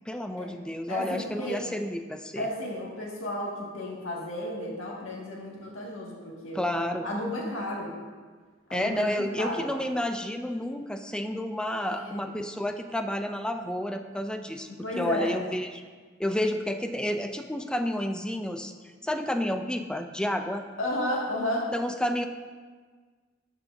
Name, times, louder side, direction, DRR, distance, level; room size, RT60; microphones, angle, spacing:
voice 1, 0.1-2.5 6.5-7.1 8.7-14.7 15.0-15.7 16.2-20.6 21.7-22.3, left 1 dB, 5° left, 6 dB, 0.3 m, -30 dB
voice 2, 0.9-1.7 2.4-7.9 8.7-9.7 11.9-12.3 14.8-15.4 20.8-21.7, left 1 dB, 85° left, -3 dB, 1.8 m, -33 dB
12.5 x 5.7 x 2.6 m, 1.5 s
head